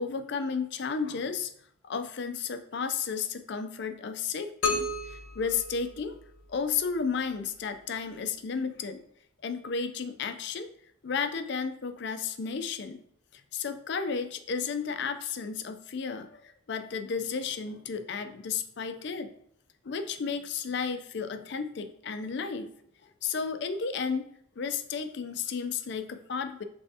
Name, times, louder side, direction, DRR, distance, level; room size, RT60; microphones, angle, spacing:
voice 1, 0.0-1.5 1.8-6.2 6.5-9.0 9.4-10.7 11.0-13.0 13.5-19.3 19.8-22.7 23.2-24.3 24.6-26.6, left 5 dB, 55° left, 8 dB, 0.4 m, -33 dB
sound 1, 4.6-6.5, left 3 dB, 75° left, 0.9 m, -32 dB
5.5 x 3.4 x 2.7 m, 0.67 s
head